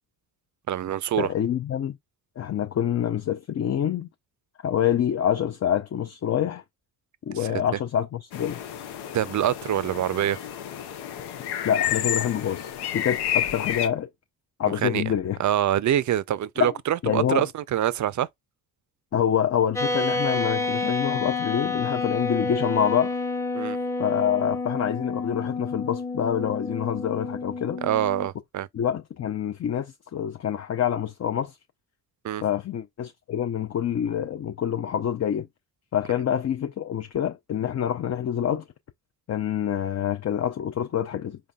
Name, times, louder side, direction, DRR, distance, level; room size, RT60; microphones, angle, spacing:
voice 1, 0.7-1.3 7.3-7.6 9.1-10.4 14.8-15.0 15.4-18.3 23.5-23.8 27.8-28.7 32.2-32.4, right 11 dB, 50° right, 0.4 m, -25 dB
voice 2, 1.2-2.0 2.4-4.1 4.6-6.6 7.3-8.6 11.6-14.1 14.6-15.4 16.6-16.7 17.0-17.4 19.1-23.2 24.0-27.8 28.7-31.6 32.4-35.5 35.9-38.6 39.3-41.4, left 9 dB, 40° left, 0.5 m, -26 dB
sound 1, 8.3-13.9, left 10 dB, 90° left, 0.6 m, -30 dB
sound 2, 19.8-28.3, left 3 dB, 10° left, 0.7 m, -29 dB
4.0 x 3.2 x 2.3 m
cardioid pair, 60°, 39 cm